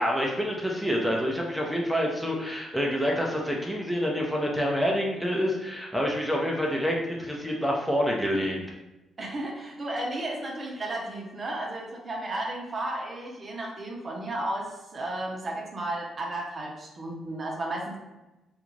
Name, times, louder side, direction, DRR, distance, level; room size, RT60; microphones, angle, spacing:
voice 1, 0.0-8.6, equal, ahead, -2 dB, 0.6 m, -27 dB
voice 2, 9.2-18.0, right 1 dB, 45° right, -1 dB, 0.7 m, -33 dB
2.4 x 2.4 x 3.1 m, 1.0 s
supercardioid pair, 55°, 0 cm